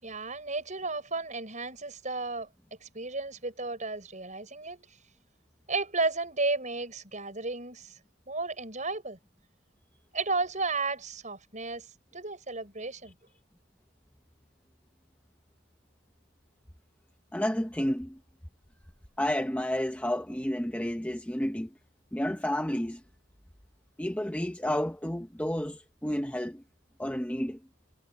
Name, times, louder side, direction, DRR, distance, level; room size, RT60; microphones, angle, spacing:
voice 1, 0.0-2.5 2.8-5.0 5.7-8.0 8.3-9.2 10.1-11.9 12.1-13.1, right 3 dB, 35° right, 6.7 m, -33 dB
voice 2, 17.3-18.2 19.2-21.7 22.1-23.0 24.0-26.6 27.0-27.6, left 1 dB, 5° left, 0.8 m, -31 dB
head